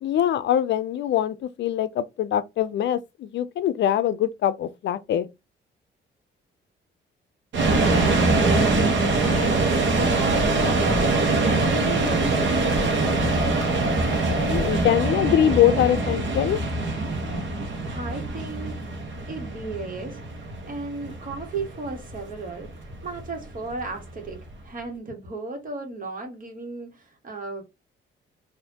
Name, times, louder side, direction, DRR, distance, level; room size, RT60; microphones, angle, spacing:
voice 1, 0.0-5.3 14.4-16.6, left 11 dB, 65° left, 0.5 m, -23 dB
sound 1, 7.5-24.5, right 3 dB, 65° right, 1.1 m, -23 dB
voice 2, 8.2-8.8 9.1-13.6 17.9-18.8 19.3-20.2 20.6-27.6, right 3 dB, 45° right, 1.6 m, -35 dB
sound 2, 9.4-14.9, left 1 dB, 20° left, 1.4 m, -37 dB
4.1 x 2.6 x 2.8 m
cardioid pair, 90°, 20 cm